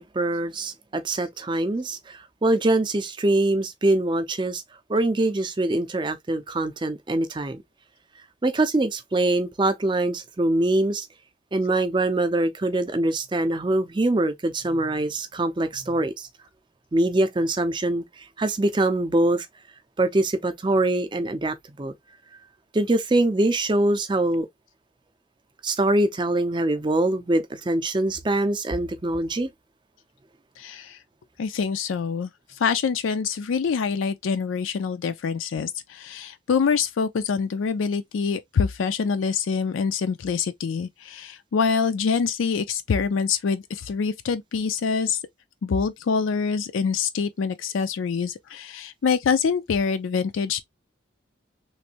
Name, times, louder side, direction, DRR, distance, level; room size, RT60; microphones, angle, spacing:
voice 1, 0.0-4.6 4.9-7.6 8.4-11.1 11.5-16.3 16.9-19.5 20.0-21.9 22.7-24.5 25.6-29.5, right 2 dB, 25° right, 0.4 m, -23 dB
voice 2, 30.6-31.0 31.4-32.3 32.6-45.2 45.6-50.6, left 5 dB, 85° left, 0.4 m, -25 dB
3.2 x 2.5 x 2.8 m
head